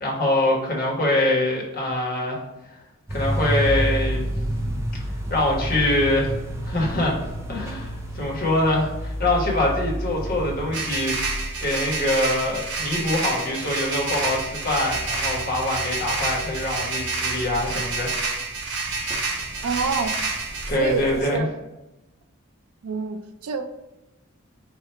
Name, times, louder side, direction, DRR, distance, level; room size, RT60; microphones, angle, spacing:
voice 1, 0.0-2.4 2.7-2.8 3.1-4.3 5.3-6.3 6.6-7.2 7.5-11.2 11.6-18.2 20.7-21.4, left 1 dB, 40° left, -3 dB, 1.1 m, -24 dB
sound 1, 3.1-21.4, equal, 10° right, 0.4 m, -32 dB
sound 2, 10.7-20.7, right 4 dB, 55° right, 0.7 m, -29 dB
voice 2, 19.6-20.2 20.8-21.5 22.8-23.7, right 4 dB, 85° right, 8 dB, 0.4 m, -27 dB
4.5 x 2.4 x 4.4 m, 0.98 s
head